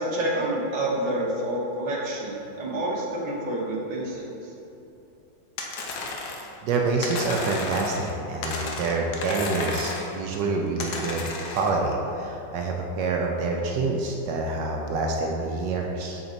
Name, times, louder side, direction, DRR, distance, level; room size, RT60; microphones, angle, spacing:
voice 1, 0.0-4.5, right 1 dB, 30° right, -5 dB, 0.8 m, -28 dB
sound 1, 5.6-6.5 7.0-8.1 8.4-10.2 10.8-11.7, left 3 dB, 65° left, 1.1 m, -33 dB
voice 2, 6.6-16.2, right 3 dB, 75° right, 0 dB, 1.1 m, -27 dB
7.0 x 4.2 x 3.9 m, 2.8 s
omnidirectional pair, 2.1 m